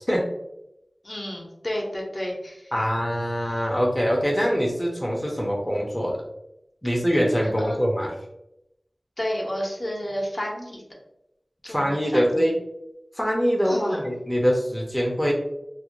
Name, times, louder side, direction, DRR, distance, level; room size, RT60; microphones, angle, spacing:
voice 1, 1.0-2.7 7.6-7.8 9.2-10.8 11.6-12.5 13.6-14.0, equal, 50° left, -2 dB, 0.7 m, -31 dB
voice 2, 2.7-6.2 6.8-8.2 11.7-12.6 13.1-15.3, equal, 10° left, -2 dB, 0.5 m, -23 dB
2.4 x 2.1 x 2.9 m, 0.84 s
wide cardioid pair, 55°, 0 cm